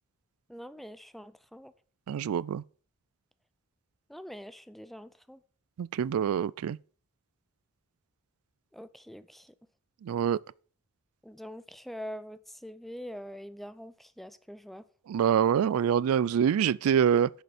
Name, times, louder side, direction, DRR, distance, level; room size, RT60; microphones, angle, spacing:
voice 1, 0.5-1.7 4.1-5.4 8.7-9.5 11.2-14.8, equal, ahead, 0.4 m, -44 dB
voice 2, 2.1-2.6 5.8-6.8 10.0-10.4 15.1-17.3, right 8 dB, 85° right, 0.3 m, -25 dB
10.5 x 6.8 x 5.0 m
head